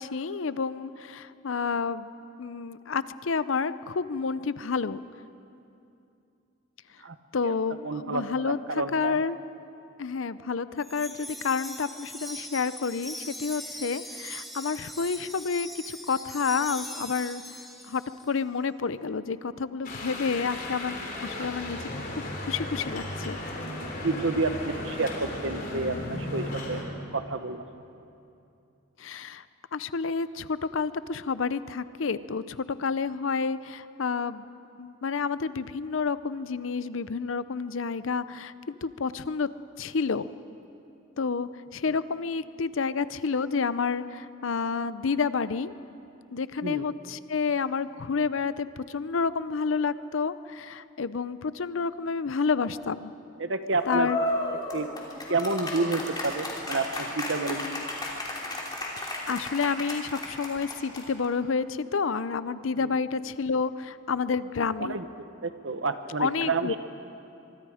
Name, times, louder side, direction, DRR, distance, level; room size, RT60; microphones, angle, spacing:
voice 1, 0.0-2.1 2.4-5.0 7.3-9.4 10.0-17.4 17.8-21.9 22.4-23.4 29.0-29.4 29.7-34.5 34.8-39.5 39.8-40.3 41.2-45.7 46.3-53.1 53.9-54.2 57.4-57.8 59.0-65.0 66.2-66.8, left 5 dB, 70° left, 15 dB, 0.6 m, -29 dB
voice 2, 7.8-9.2 21.4-21.5 24.0-26.8 27.1-27.6 46.6-46.9 53.4-54.1 54.7-54.9 55.3-57.9 62.8-62.9 64.8-65.0 65.4-66.8, right 3 dB, 65° right, 9 dB, 1.1 m, -29 dB
Wind chime, 10.8-18.3, equal, ahead, 1.4 m, -41 dB
sound 1, 19.8-26.8, left 1 dB, 45° left, 3.4 m, -35 dB
sound 2, 53.8-61.3, left 1 dB, 20° left, 3.0 m, -33 dB
24.5 x 23.5 x 5.0 m, 2.6 s
head